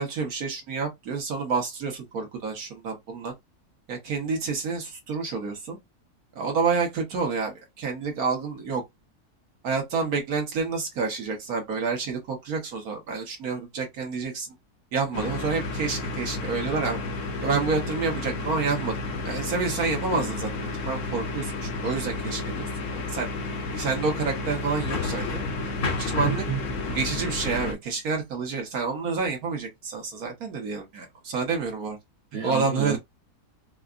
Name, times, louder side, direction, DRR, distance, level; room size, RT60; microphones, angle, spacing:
voice 1, 0.0-3.3 3.9-5.8 6.3-8.8 9.6-14.5 14.9-17.0 17.4-18.9 19.2-23.3 23.7-25.4 26.0-26.4 26.9-32.0 32.4-33.0, right 4 dB, 70° right, 1.5 m, -29 dB
sound 1, 15.1-27.7, left 3 dB, 60° left, 1.1 m, -31 dB
voice 2, 26.2-26.8 32.3-33.0, right 6 dB, 50° right, 0.9 m, -30 dB
4.7 x 2.2 x 2.4 m
omnidirectional pair, 1.6 m